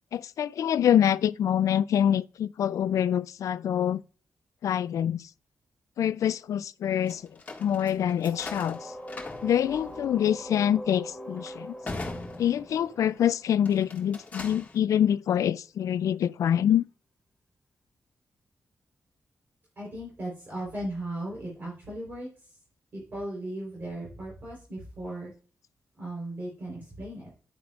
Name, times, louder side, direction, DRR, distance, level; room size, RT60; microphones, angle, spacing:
voice 1, 0.1-4.0 4.6-5.2 6.0-7.2 7.6-8.8 9.4-11.7 12.4-16.8, left 9 dB, 85° left, 0.3 m, -25 dB
sound 1, 7.1-13.1 13.6-14.8, left 2 dB, 30° left, 1.7 m, -42 dB
sound 2, 8.3-14.0, equal, ahead, 1.3 m, -42 dB
voice 2, 19.8-22.6 22.9-25.3 26.0-27.3, right 1 dB, 40° right, 3.9 m, -37 dB
10.5 x 9.5 x 2.5 m
wide cardioid pair, 150°, 5 cm